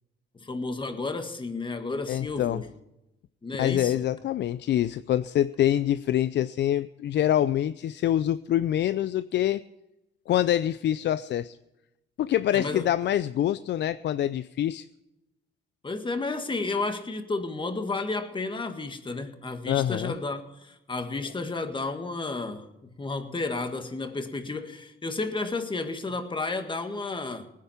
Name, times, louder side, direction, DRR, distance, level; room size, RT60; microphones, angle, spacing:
voice 1, 0.3-2.7 3.4-4.0 12.5-12.9 15.8-22.7 23.0-27.5, left 3 dB, 25° left, 1.8 m, -32 dB
voice 2, 2.1-2.6 3.6-9.6 10.3-11.6 12.2-14.9 19.7-20.1, left 11 dB, 65° left, 0.5 m, -25 dB
19.5 x 9.9 x 5.9 m
cardioid pair, 90°, 20 cm